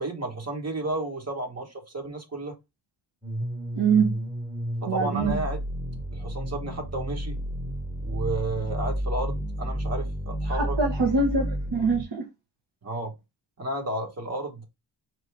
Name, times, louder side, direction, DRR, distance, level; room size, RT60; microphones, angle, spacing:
voice 1, 0.0-2.5 4.8-5.6 6.1-7.4 8.0-10.8 12.8-13.1 13.6-14.6, right 2 dB, 35° right, 1.1 m, -32 dB
sound 1, 3.2-12.0, equal, 5° right, 1.0 m, -31 dB
voice 2, 3.7-4.2 4.9-5.4 10.5-12.3, right 4 dB, 70° right, 1.0 m, -24 dB
4.4 x 2.6 x 3.3 m
wide cardioid pair, 145°, 43 cm